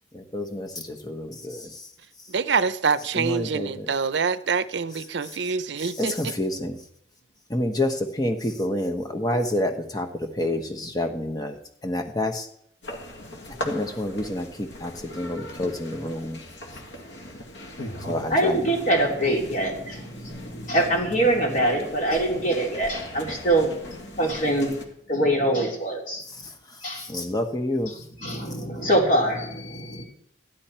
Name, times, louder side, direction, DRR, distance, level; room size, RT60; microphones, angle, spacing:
voice 1, 0.1-1.8 3.1-3.9 5.2-5.4 5.8-6.8 7.5-11.6 11.8-12.5 13.7-16.4 18.1-18.6 26.4-26.5 27.0-27.9, left 1 dB, 20° left, 1.2 m, -28 dB
voice 2, 2.3-6.1, right 5 dB, 70° right, 0.6 m, -25 dB
sound 1, 12.8-24.8, equal, 75° left, 2.0 m, -40 dB
voice 3, 18.2-24.8 25.1-26.2 26.8-27.1 27.9-30.0, right 1 dB, 45° left, 3.7 m, -24 dB
15.0 x 12.0 x 4.4 m
head